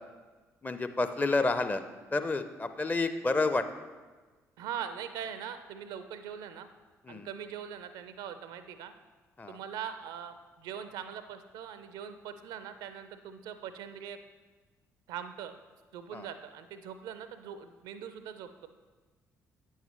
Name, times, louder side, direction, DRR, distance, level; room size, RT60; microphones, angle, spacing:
voice 1, 0.6-1.8 2.1-3.7 7.0-7.3 9.4-9.6 16.1-16.3, left 3 dB, 20° left, 10 dB, 0.5 m, -29 dB
voice 2, 4.6-6.7 7.1-8.9 9.5-14.2 15.1-15.5 15.9-18.7, right 8 dB, 60° right, 10 dB, 0.5 m, -41 dB
9.2 x 7.2 x 3.1 m, 1.3 s
figure-of-eight pair, 45°, 8 cm